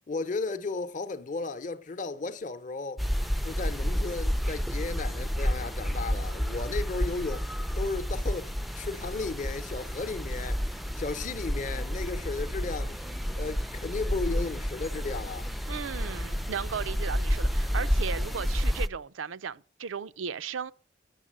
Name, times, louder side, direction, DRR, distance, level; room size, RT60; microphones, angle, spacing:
voice 1, 0.1-3.0 3.4-7.5 7.8-10.6 10.9-13.0 13.4-15.5, left 3 dB, 40° left, 0.8 m, -34 dB
sound 1, 3.0-18.9, equal, ahead, 0.4 m, -30 dB
voice 2, 15.7-20.7, right 6 dB, 85° right, 0.6 m, -36 dB
9.0 x 7.2 x 7.3 m
head